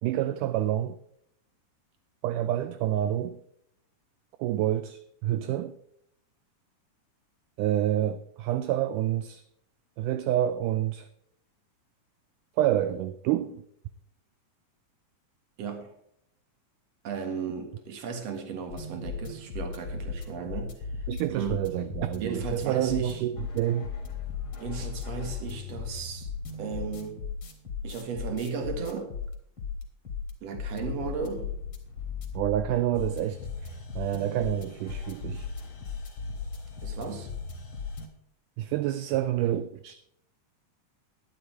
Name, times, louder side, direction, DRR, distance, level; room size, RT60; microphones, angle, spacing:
voice 1, 0.0-1.0 2.2-3.4 4.4-5.7 7.6-9.4 10.0-11.1 12.6-13.6 21.1-23.9 32.4-33.7 34.0-35.5 38.6-40.0, right 12 dB, 80° right, 2.0 m, -28 dB
voice 2, 15.6-15.9 17.0-21.6 22.2-23.2 24.6-26.3 26.6-27.2 27.8-29.1 30.4-31.5 36.8-37.3, right 6 dB, 55° right, 2.5 m, -35 dB
sound 1, 18.7-38.1, left 5 dB, 45° left, 2.2 m, -37 dB
11.0 x 10.0 x 4.5 m
omnidirectional pair, 3.8 m